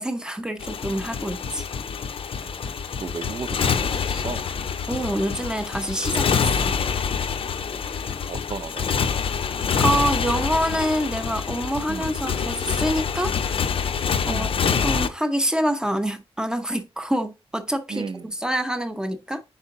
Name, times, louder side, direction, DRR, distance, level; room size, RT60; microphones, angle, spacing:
voice 1, 0.0-1.6 4.9-6.8 9.8-13.6 14.2-14.5 14.8-19.4, right 1 dB, 5° right, 0.7 m, -26 dB
Motorcycle, 0.6-15.1, left 6 dB, 65° left, 0.5 m, -26 dB
voice 2, 3.0-4.5 6.7-6.9 7.6-7.8 8.3-9.0 11.9-12.2 14.3-14.6 17.9-18.3, right 5 dB, 50° right, 0.5 m, -35 dB
5.5 x 4.6 x 3.8 m
wide cardioid pair, 175°, 10 cm